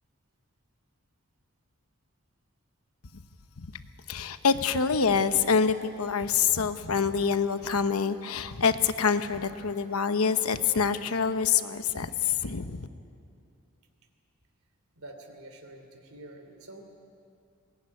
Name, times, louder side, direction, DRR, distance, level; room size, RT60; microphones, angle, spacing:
voice 1, 4.1-12.9, left 6 dB, 85° left, 10 dB, 1.0 m, -26 dB
voice 2, 14.9-16.8, right 1 dB, 80° right, 6 dB, 3.2 m, -47 dB
21.0 x 19.0 x 9.8 m, 2.5 s
head